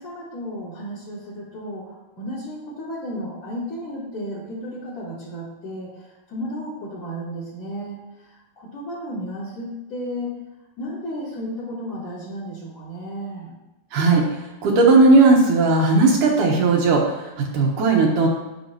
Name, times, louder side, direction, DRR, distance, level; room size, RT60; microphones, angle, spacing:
voice 1, 0.0-5.9 6.3-8.0 8.6-10.4 10.8-13.5, equal, 40° left, -7 dB, 4.6 m, -33 dB
voice 2, 13.9-14.2 14.6-18.3, right 3 dB, 70° right, -1 dB, 2.6 m, -16 dB
10.0 x 10.0 x 3.0 m, 0.99 s
omnidirectional pair, 4.1 m